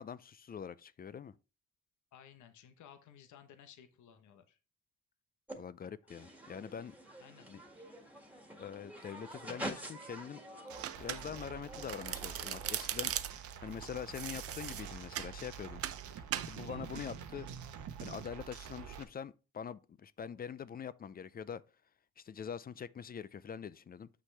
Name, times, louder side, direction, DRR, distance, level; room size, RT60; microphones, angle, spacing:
voice 1, 0.0-1.3 5.6-6.9 7.5-7.6 8.6-10.4 11.0-13.1 13.6-15.8 16.4-17.5 18.0-21.6 22.2-24.1, left 7 dB, 30° left, 0.4 m, -44 dB
voice 2, 2.1-4.6 5.8-5.9 7.2-7.5, left 9 dB, 75° left, 1.0 m, -57 dB
sound 1, 5.5-5.6 6.1-12.9, right 1 dB, 5° right, 1.8 m, -47 dB
sound 2, 10.7-19.0, right 8 dB, 75° right, 1.0 m, -47 dB
Domestic sounds home sounds, 10.8-11.5 11.8-13.5 14.1-15.3 15.8-16.0 16.3-16.5, right 10 dB, 50° right, 0.6 m, -38 dB
7.7 x 6.0 x 3.3 m
cardioid pair, 90°, 30 cm